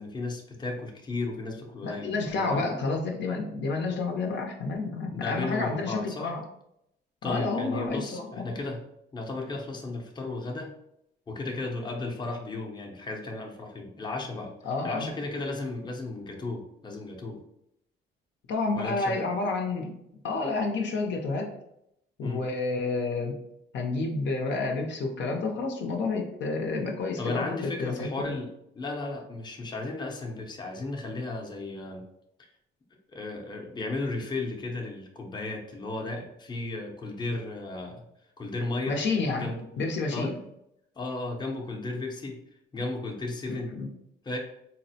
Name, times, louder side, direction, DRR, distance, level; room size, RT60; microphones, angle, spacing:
voice 1, 0.0-2.7 5.1-6.3 7.2-8.8 9.1-10.7 11.3-14.5 14.8-17.4 18.8-19.2 22.2-22.4 27.2-32.0 33.1-38.1 38.4-39.0 39.3-40.4 41.0-42.4 42.7-43.8 44.3-44.4, left 2 dB, 20° left, 0 dB, 0.6 m, -34 dB
voice 2, 1.8-6.4 7.2-8.5 14.6-15.1 18.5-19.9 20.2-21.5 22.2-23.4 23.7-28.4 38.9-39.5 39.8-40.3 43.5-43.9, left 3 dB, 65° left, 2 dB, 0.6 m, -30 dB
4.0 x 2.0 x 2.7 m, 0.78 s
cardioid pair, 90°, 20 cm